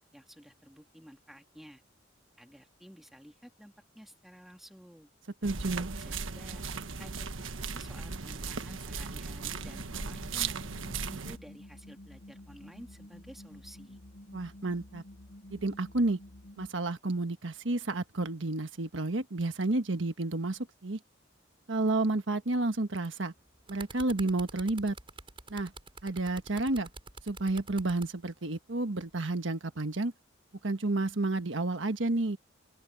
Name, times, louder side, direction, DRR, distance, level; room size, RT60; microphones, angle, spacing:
voice 1, 0.0-1.8 2.4-5.1 5.7-6.6 7.0-10.6 11.0-14.0, equal, ahead, 3.1 m, -53 dB
voice 2, 5.4-5.9 14.3-15.0 15.5-16.2 16.6-21.0 21.7-23.3 23.7-24.9 25.5-25.7 26.0-26.9 27.2-30.1 30.6-32.4, right 2 dB, 70° right, 1.4 m, -31 dB
sound 1, 5.4-11.4, right 5 dB, 85° right, 1.3 m, -37 dB
sound 2, 9.5-16.7, left 1 dB, 65° left, 1.3 m, -51 dB
sound 3, 23.4-28.1 29.0-29.2, right 3 dB, 25° right, 4.9 m, -47 dB
open air
head